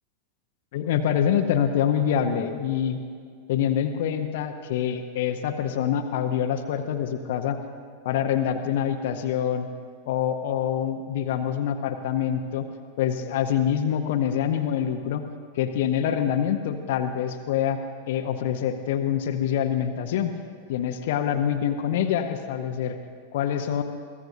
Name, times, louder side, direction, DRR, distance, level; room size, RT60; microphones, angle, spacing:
voice 1, 0.7-3.0 3.5-7.6 8.0-9.7 10.1-12.7 13.0-15.2 15.5-17.8 18.1-20.3 20.7-23.0 23.3-23.8, left 9 dB, 55° left, 6 dB, 0.8 m, -25 dB
23.0 x 16.0 x 2.6 m, 2.1 s
figure-of-eight pair, 90°, 0 cm